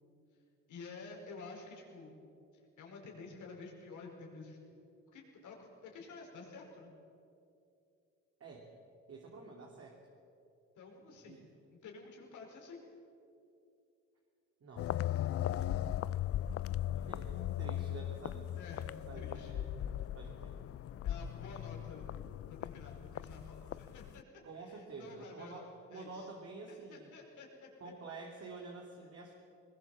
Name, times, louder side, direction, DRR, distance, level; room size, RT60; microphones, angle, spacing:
voice 1, 0.7-2.1 2.8-4.6 5.1-6.9 10.8-11.5 11.7-12.8 16.9-17.5 18.6-19.5 21.0-22.1 22.5-24.2 24.6-26.3 26.7-27.7, left 4 dB, 75° left, 0 dB, 5.2 m, -51 dB
voice 2, 8.4-8.7 9.1-10.0 11.3-11.4 14.6-14.9 15.4-15.8 17.0-18.5 19.1-19.7 20.1-20.6 24.4-27.1 27.8-29.3, right 3 dB, 50° right, 0 dB, 3.0 m, -49 dB
sound 1, 14.8-24.2, left 12 dB, 50° left, 0.5 m, -38 dB
21.0 x 20.5 x 7.5 m, 2.6 s
cardioid pair, 90°, 30 cm